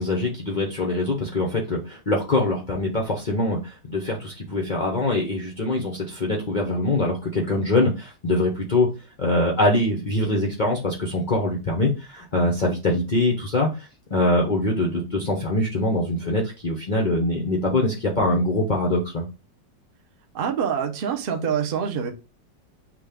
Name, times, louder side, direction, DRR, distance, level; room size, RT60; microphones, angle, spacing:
voice 1, 0.0-8.9 9.2-13.7 14.1-19.3, left 2 dB, 75° left, 0.4 m, -23 dB
voice 2, 20.3-22.1, right 7 dB, 70° right, 0.5 m, -25 dB
6.1 x 2.3 x 3.4 m
omnidirectional pair, 2.0 m